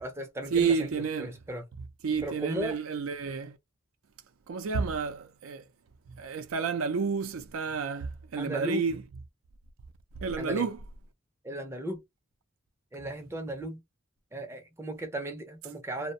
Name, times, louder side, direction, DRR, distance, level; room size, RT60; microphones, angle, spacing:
voice 1, 0.0-0.9 1.2-1.6 2.2-2.8 8.4-8.8 10.4-10.7 11.4-12.0 12.9-13.8 14.3-16.1, right 1 dB, 10° right, 0.5 m, -36 dB
voice 2, 0.5-1.3 2.0-3.6 4.5-5.6 6.2-9.0 10.2-10.8, right 5 dB, 75° right, 0.4 m, -30 dB
2.4 x 2.0 x 2.6 m
head